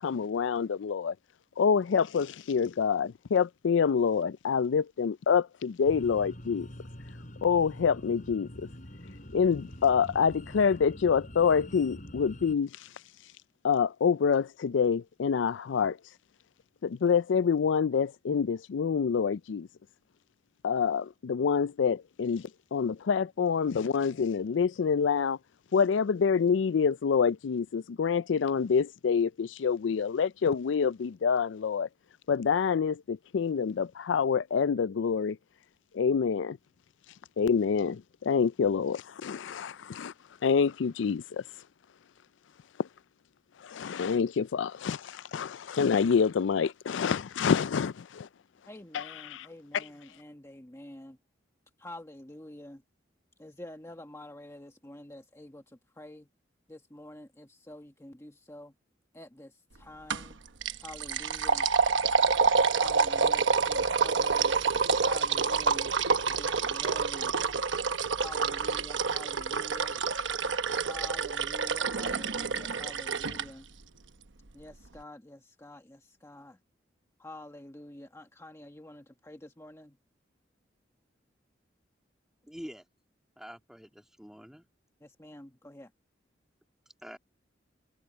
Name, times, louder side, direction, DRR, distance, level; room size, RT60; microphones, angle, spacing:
voice 1, 0.0-1.1 1.6-6.7 7.4-8.7 9.3-12.7 13.6-16.0 16.8-19.7 20.6-25.4 25.7-31.9 32.3-35.4 35.9-36.6 37.4-40.1 40.4-41.4 42.8-42.9 43.6-48.3 48.9-49.0 49.3-49.5, left 6 dB, 80° left, 0.4 m, -27 dB
sound 1, 5.8-12.6, equal, 45° left, 5.7 m, -45 dB
voice 2, 48.7-51.2 51.8-52.8 53.4-56.3 56.7-58.7 59.1-60.4 60.8-61.7 62.7-64.6 65.0-65.9 66.3-67.4 68.2-70.0 70.8-73.7 74.5-76.6 77.2-80.0 85.0-85.9, left 1 dB, 15° left, 1.4 m, -47 dB
sound 2, 60.1-60.3 60.6-73.4, right 5 dB, 90° right, 1.1 m, -27 dB
voice 3, 82.5-82.8 83.4-84.7 87.0-87.2, equal, 5° right, 2.0 m, -45 dB
head